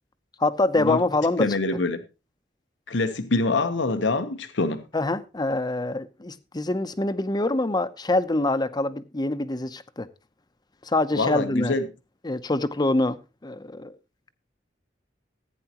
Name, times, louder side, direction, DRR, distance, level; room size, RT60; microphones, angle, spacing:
voice 1, 0.4-1.5 4.9-10.1 10.8-11.8 12.2-13.9, left 2 dB, 25° left, 0.7 m, -25 dB
voice 2, 1.4-2.0 2.9-4.8 11.2-11.8, left 3 dB, 90° left, 1.0 m, -25 dB
15.5 x 9.2 x 2.9 m
head